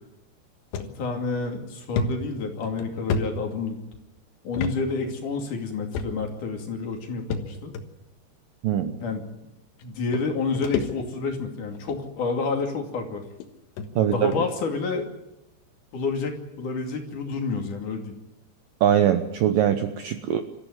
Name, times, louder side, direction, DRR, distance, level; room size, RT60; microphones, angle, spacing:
sound 1, 0.7-0.9 1.4-1.5 2.0-4.0 4.5-4.8 5.0-5.2 5.9-6.4 7.3-7.8 8.7-8.8 9.8-9.9 10.1-11.3 11.7-12.0 12.8-12.9 13.4-13.5 13.8-13.9 14.3-14.5, left 4 dB, 75° left, 3.6 m, -31 dB
voice 1, 1.0-3.8 4.4-7.7 9.0-9.2 9.8-13.2 14.0-15.1 15.9-18.1, left 4 dB, 50° left, 3 dB, 3.7 m, -29 dB
voice 2, 8.6-8.9 14.0-14.3 18.8-20.4, right 10 dB, 75° right, 9 dB, 2.1 m, -22 dB
26.5 x 14.5 x 9.8 m, 0.96 s
omnidirectional pair, 5.1 m